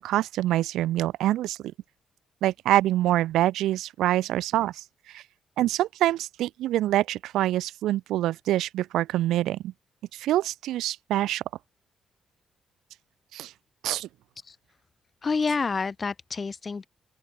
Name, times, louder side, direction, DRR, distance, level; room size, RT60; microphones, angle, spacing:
voice 1, 0.0-1.7 2.4-4.8 5.1-5.2 5.6-9.7 10.1-11.4 13.3-13.5 13.8-14.1, right 14 dB, 85° right, 0.7 m, -25 dB
voice 2, 15.2-16.9, left 4 dB, 35° left, 3.9 m, -28 dB
open air
cardioid pair, 90°, 0 cm